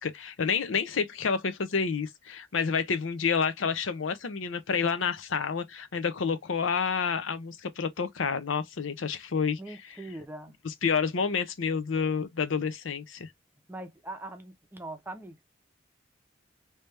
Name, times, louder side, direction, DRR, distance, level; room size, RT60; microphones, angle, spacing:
voice 1, 0.0-9.6 10.8-13.3, left 6 dB, 90° left, 0.6 m, -29 dB
voice 2, 9.6-10.6 13.7-15.4, right 2 dB, 10° right, 0.7 m, -41 dB
3.3 x 2.9 x 3.3 m
head